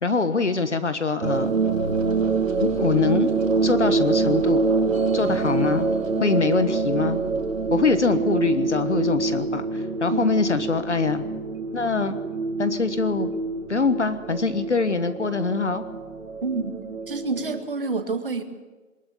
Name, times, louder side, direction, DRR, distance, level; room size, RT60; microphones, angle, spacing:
voice 1, 0.0-1.6 2.6-3.3 3.6-4.6 5.1-5.9 6.2-7.2 7.7-11.2 11.7-12.2 12.6-13.3 13.7-15.8, left 4 dB, 50° left, 11 dB, 1.4 m, -24 dB
sound 1, 1.2-17.6, right 3 dB, 60° right, 2.6 m, -25 dB
voice 2, 16.4-16.8 17.1-18.4, right 4 dB, 40° right, 6 dB, 2.0 m, -28 dB
22.0 x 21.0 x 7.0 m, 1.3 s
hypercardioid pair, 180°, 44 cm